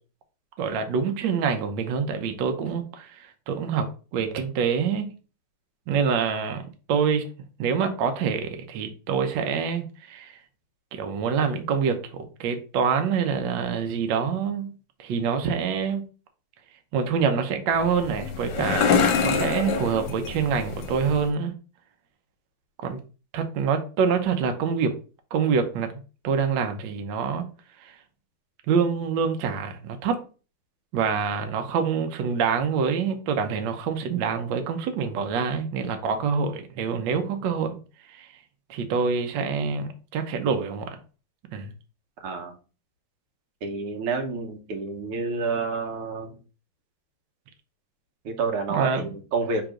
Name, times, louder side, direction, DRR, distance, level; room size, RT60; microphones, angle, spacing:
voice 1, 0.6-3.1 3.5-3.9 4.1-5.1 5.9-6.6 6.9-7.3 7.6-10.3 10.9-16.1 16.9-18.9 19.2-21.5 22.8-23.0 23.3-24.9 25.3-25.9 26.2-27.4 28.7-30.2 30.9-37.8 38.1-38.3 38.7-40.9 41.5-41.7 48.7-49.1, right 6 dB, 70° right, 6 dB, 1.3 m, -26 dB
sound 1, 17.7-21.3, left 5 dB, 65° left, 1.2 m, -26 dB
voice 2, 42.2-42.6 43.6-46.3 48.3-49.7, right 4 dB, 85° right, 4 dB, 1.8 m, -29 dB
3.6 x 2.9 x 4.8 m, 0.35 s
omnidirectional pair, 2.4 m